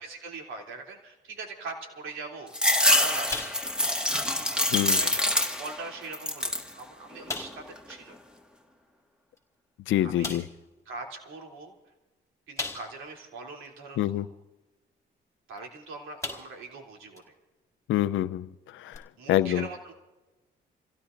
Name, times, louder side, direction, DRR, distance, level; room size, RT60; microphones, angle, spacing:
voice 1, 0.0-2.5 3.0-3.4 4.9-5.3 5.6-8.1 10.0-10.4 10.9-11.7 12.5-14.2 15.5-17.2 19.2-19.9, right 3 dB, 85° right, 1 dB, 3.1 m, -41 dB
sound 1, 2.5-5.8 6.1-6.7 7.2-7.9, left 1 dB, 5° right, 1.7 m, -25 dB
sound 2, 3.3-4.0 4.3-4.5 5.0-5.1 6.0-6.1 6.5-6.6 7.3-7.7 9.4-9.5 10.2-10.6 12.6-13.1 13.6-13.7 15.6-15.7 16.2-16.7 17.2-17.3 18.9-19.0, left 3 dB, 15° left, 4.1 m, -37 dB
voice 2, 4.7-5.0 9.9-10.5 14.0-14.3 17.9-19.7, left 13 dB, 80° left, 13 dB, 0.6 m, -27 dB
29.5 x 16.5 x 2.6 m, 1.1 s
cardioid pair, 90°, 20 cm